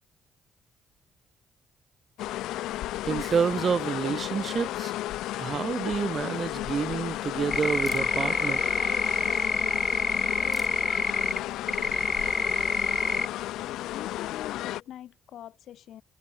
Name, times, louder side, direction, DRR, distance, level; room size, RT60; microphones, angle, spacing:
sound 1, 2.2-14.8, left 15 dB, 90° left, 0.7 m, -33 dB
voice 1, 3.0-4.9 5.4-8.6, right 6 dB, 45° right, 1.1 m, -28 dB
Camera, 5.5-13.8, equal, ahead, 5.6 m, -56 dB
sound 2, 7.5-11.4 11.7-13.3, left 2 dB, 15° left, 0.4 m, -27 dB
voice 2, 13.6-16.0, left 11 dB, 75° left, 7.3 m, -43 dB
cardioid pair, 90°, 0 cm